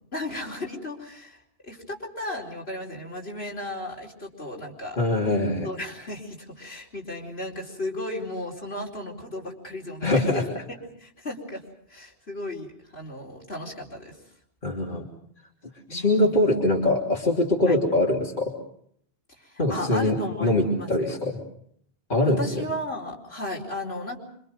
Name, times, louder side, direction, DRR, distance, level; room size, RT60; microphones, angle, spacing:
voice 1, 0.1-5.0 5.6-10.4 11.0-11.6 11.9-14.2 15.9-16.4 17.7-17.8 19.4-21.2 22.2-24.2, left 1 dB, 75° left, -2 dB, 4.7 m, -35 dB
voice 2, 5.0-5.7 10.0-10.4 14.6-15.1 15.9-18.5 19.6-21.4 22.1-22.6, left 1 dB, 50° left, -2 dB, 3.3 m, -23 dB
26.5 x 25.5 x 5.3 m, 0.67 s
omnidirectional pair, 1.1 m